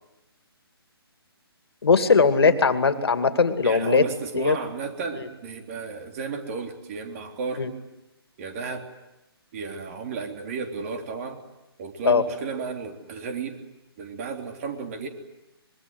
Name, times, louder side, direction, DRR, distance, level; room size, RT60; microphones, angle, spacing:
voice 1, 1.8-4.0 4.3-4.6 5.2-5.3 7.6-7.7 12.0-12.2, left 5 dB, 75° left, 9 dB, 2.6 m, -20 dB
voice 2, 3.6-7.7 8.4-8.9 9.5-11.4 11.8-13.6 14.0-15.1, right 5 dB, 35° right, 5 dB, 3.5 m, -33 dB
24.5 x 22.5 x 9.6 m, 0.94 s
hypercardioid pair, 150°, 13 cm